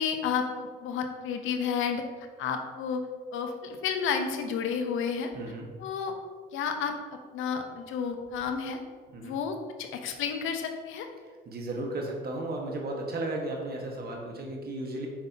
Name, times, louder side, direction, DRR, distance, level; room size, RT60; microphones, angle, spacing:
voice 1, 0.0-2.0 2.4-3.0 3.3-5.3 5.8-6.1 6.5-6.9 7.3-8.8 9.2-11.1, left 6 dB, 85° left, 5 dB, 0.8 m, -31 dB
voice 2, 5.3-5.7 9.1-9.4 11.5-15.1, right 2 dB, 50° right, 0 dB, 1.4 m, -34 dB
7.5 x 5.3 x 2.8 m, 1.5 s
cardioid pair, 90°, 20 cm